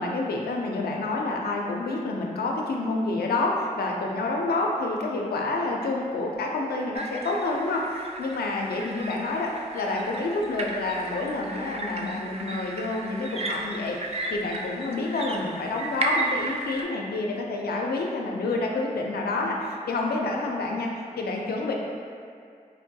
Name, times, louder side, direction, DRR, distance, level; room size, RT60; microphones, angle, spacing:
voice 1, 0.0-21.7, left 2 dB, 85° left, 0 dB, 0.4 m, -28 dB
sound 1, 6.9-16.8, right 2 dB, 40° right, 0.4 m, -34 dB
4.1 x 2.2 x 2.6 m, 2.3 s
cardioid pair, 50°, 16 cm